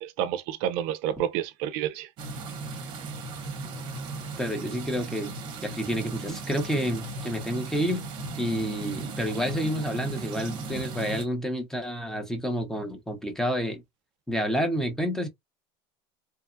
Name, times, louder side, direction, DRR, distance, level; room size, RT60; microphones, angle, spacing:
voice 1, 0.0-2.1, right 10 dB, 60° right, 0.4 m, -29 dB
sound 1, 2.2-11.2, right 3 dB, 40° right, 0.8 m, -36 dB
voice 2, 4.4-5.3 5.6-8.0 8.4-13.8 14.3-15.3, equal, 5° left, 0.6 m, -29 dB
2.8 x 2.2 x 2.5 m
cardioid pair, 150°, 12 cm